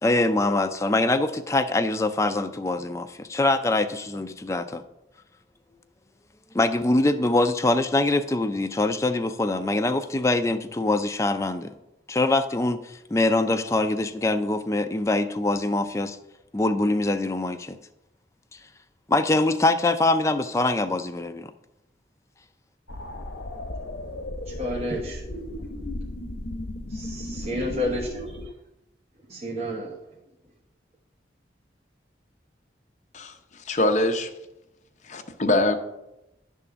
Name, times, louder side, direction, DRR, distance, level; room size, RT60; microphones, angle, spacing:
voice 1, 0.0-4.8 6.5-11.7 12.1-16.2 16.5-17.8 19.1-21.5, left 2 dB, 15° left, 0.4 m, -24 dB
sound 1, 22.9-28.5, left 1 dB, 80° left, 0.8 m, -35 dB
voice 2, 24.5-25.2 25.5-25.7 26.9-28.5 29.3-30.0, equal, 35° right, 1.1 m, -31 dB
voice 3, 33.7-34.3 35.1-35.8, left 1 dB, 40° left, 0.8 m, -23 dB
11.0 x 3.7 x 6.9 m
head